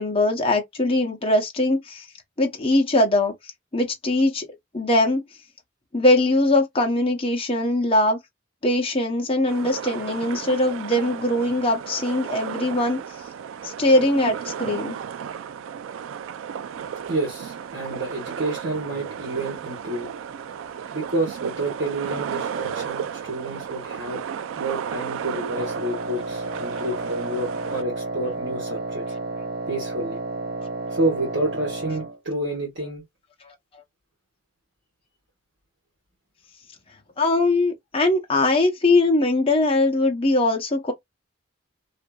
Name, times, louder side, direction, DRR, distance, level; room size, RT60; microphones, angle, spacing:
voice 1, 0.0-2.1 2.4-3.3 3.7-4.4 4.7-5.2 5.9-8.2 8.6-13.0 13.6-15.0 33.4-33.5 37.2-40.9, left 2 dB, 30° left, 0.7 m, -21 dB
sound 1, 9.5-27.8, right 8 dB, 90° right, 0.3 m, -34 dB
voice 2, 17.0-20.1 20.9-24.2 24.6-29.0 29.7-30.2 30.9-33.0, right 2 dB, 70° right, 1.2 m, -29 dB
Wind instrument woodwind instrument, 25.5-32.2, right 2 dB, 50° right, 0.6 m, -31 dB
2.7 x 2.5 x 2.2 m
head